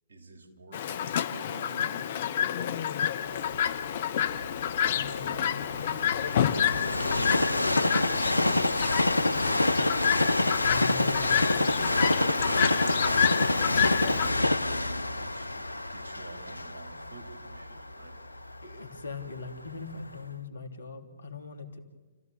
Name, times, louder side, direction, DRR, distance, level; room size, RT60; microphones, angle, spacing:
voice 1, 0.1-4.1 7.1-9.4 10.4-10.9 11.7-13.3 15.1-18.2, right 3 dB, 65° right, 5 dB, 3.6 m, -48 dB
Chirp tweet, 0.7-14.3, left 9 dB, 50° left, 1.1 m, -29 dB
Train, 3.5-19.5 20.1-20.2, left 2 dB, 85° left, 0.8 m, -27 dB
voice 2, 4.9-7.3 10.3-11.8 18.6-21.8, left 4 dB, 70° left, 6 dB, 2.8 m, -42 dB
29.5 x 15.0 x 7.2 m, 1.3 s
figure-of-eight pair, 125°, 0 cm